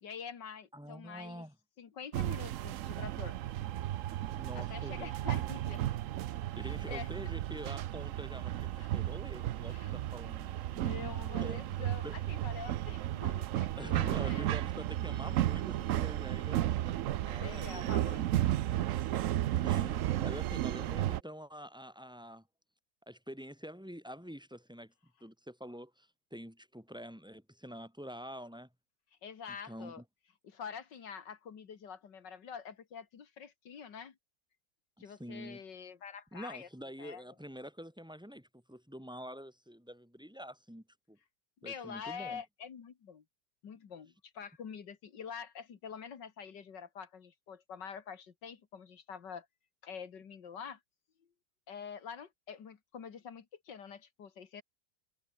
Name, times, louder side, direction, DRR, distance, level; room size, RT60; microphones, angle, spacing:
voice 1, 0.0-1.5 1.8-3.4 4.6-5.8 6.6-7.3 8.8-8.9 9.7-9.9 10.7-14.5 17.4-18.5 29.2-30.0 30.4-34.2 35.0-36.7 37.0-37.2 41.6-43.2 43.6-49.5 49.8-50.8 51.7-54.6, left 7 dB, 70° left, 2.4 m, -46 dB
voice 2, 0.7-1.5 4.4-5.1 6.6-10.5 11.0-12.2 13.8-17.9 19.5-22.4 23.1-24.9 25.2-28.7 29.7-30.0 35.2-35.6 36.3-41.2 41.6-42.4, equal, ahead, 5.8 m, -46 dB
sound 1, 2.1-21.2, right 13 dB, 75° right, 0.7 m, -34 dB
omnidirectional pair, 2.0 m